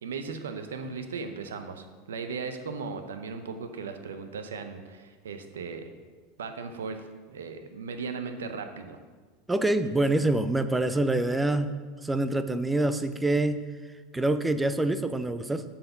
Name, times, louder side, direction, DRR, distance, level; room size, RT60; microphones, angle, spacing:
voice 1, 0.0-5.9 6.4-9.0, right 5 dB, 80° right, 8 dB, 0.6 m, -37 dB
voice 2, 9.5-11.7 12.0-13.6 14.1-15.6, right 2 dB, 10° right, 11 dB, 0.5 m, -26 dB
7.5 x 4.3 x 5.8 m, 1.4 s
hypercardioid pair, 85°, 0 cm